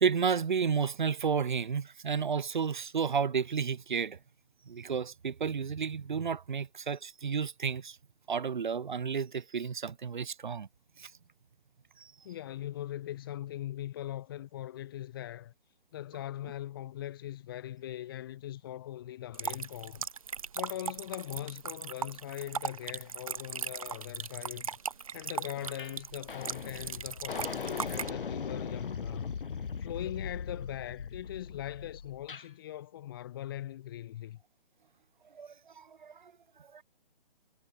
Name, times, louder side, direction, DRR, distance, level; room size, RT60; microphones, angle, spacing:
voice 1, 0.0-4.2 4.7-8.0 8.3-10.7 11.0-11.1 12.0-12.1 35.3-36.3 36.7-36.8, right 6 dB, 55° right, 1.8 m, -32 dB
voice 2, 12.2-15.5 15.9-20.1 20.5-24.7 25.1-29.4 29.8-34.4, left 13 dB, 25° left, 3.8 m, -41 dB
sound 1, 19.3-28.1, right 6 dB, 35° right, 0.8 m, -38 dB
sound 2, 25.8-26.0 26.3-32.5, left 6 dB, 65° left, 2.1 m, -39 dB
hypercardioid pair, 170°, 29 cm